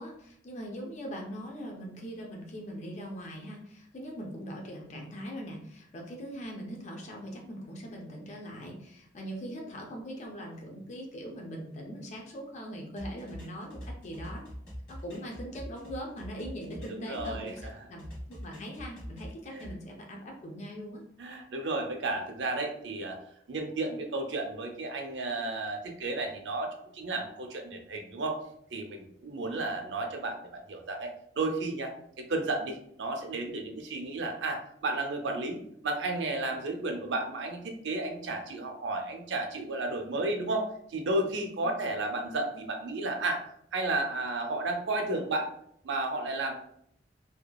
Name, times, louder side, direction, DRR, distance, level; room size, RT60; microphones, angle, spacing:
voice 1, 0.0-14.4 14.9-17.5 17.9-21.0 29.4-29.7 41.6-41.7, equal, 40° left, 0 dB, 0.4 m, -41 dB
sound 1, 13.0-17.7 18.0-19.7, equal, 75° left, 1.2 m, -43 dB
voice 2, 16.8-17.9 19.5-19.7 21.2-23.2 23.5-28.4 28.7-43.4 43.7-45.5 45.8-46.5, right 2 dB, 80° right, 4 dB, 0.5 m, -33 dB
2.7 x 2.2 x 2.2 m, 0.69 s
head